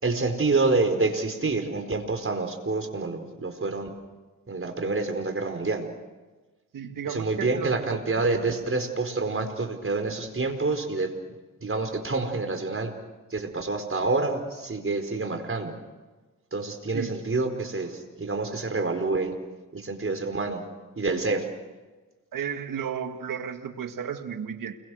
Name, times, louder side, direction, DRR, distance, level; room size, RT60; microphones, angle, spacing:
voice 1, 0.0-3.9 4.5-5.9 7.1-11.1 11.6-12.9 13.3-15.8 16.5-19.3 19.7-20.6 21.0-21.5, right 3 dB, 40° right, 6 dB, 4.7 m, -27 dB
voice 2, 6.7-8.2 16.9-17.2 22.3-24.8, right 7 dB, 85° right, 7 dB, 1.8 m, -33 dB
29.5 x 23.0 x 6.4 m, 1.3 s
cardioid pair, 45°, 32 cm